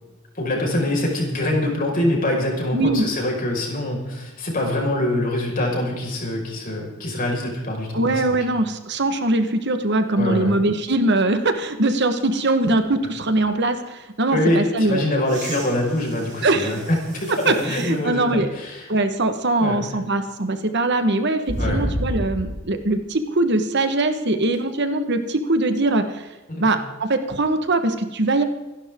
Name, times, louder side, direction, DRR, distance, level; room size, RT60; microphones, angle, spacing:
voice 1, 0.4-8.4 10.2-10.5 14.3-18.9 19.6-19.8 21.6-21.8 26.5-26.7, left 1 dB, 45° left, -1 dB, 5.3 m, -24 dB
voice 2, 2.7-3.1 7.9-15.1 16.4-16.7 17.4-18.6 18.9-26.3 26.6-28.4, right 2 dB, 60° right, 8 dB, 1.4 m, -21 dB
sound 1, 15.2-18.0 18.7-18.8 21.5-22.7 24.5-24.6, right 1 dB, 35° right, 3.7 m, -30 dB
26.5 x 11.5 x 3.7 m, 1.1 s
head